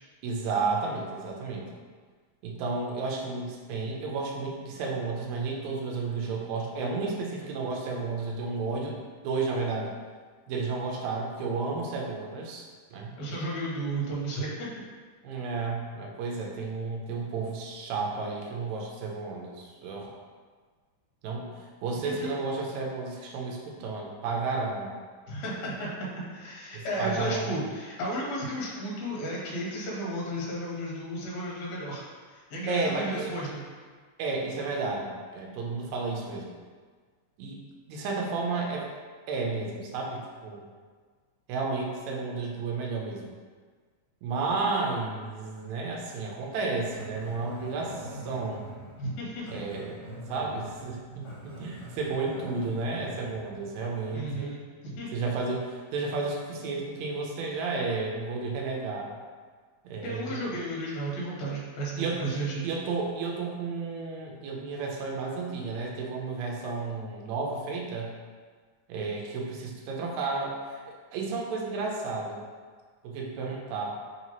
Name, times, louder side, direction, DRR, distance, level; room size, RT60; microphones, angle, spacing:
voice 1, 0.2-1.7 2.4-9.0 9.2-9.9 10.5-13.1 15.2-20.1 21.2-25.0 26.7-27.5 32.7-33.3 34.2-36.5 37.4-37.6 37.9-38.9 39.3-40.6 41.5-43.3 44.2-48.6 49.5-50.0 50.3-54.5 55.1-59.1 59.8-60.5 62.0-68.2 68.9-70.8 71.1-72.4 73.0-74.0, right 3 dB, 75° right, -1 dB, 1.7 m, -32 dB
voice 2, 13.2-14.7 22.0-22.3 25.3-32.0 32.3-33.6 49.0-49.7 54.1-55.1 60.0-62.7, right 1 dB, 70° left, -5 dB, 2.0 m, -33 dB
Growling, 46.9-54.2, right 1 dB, 90° left, 1.1 m, -44 dB
4.7 x 2.8 x 2.9 m, 1.5 s
omnidirectional pair, 3.7 m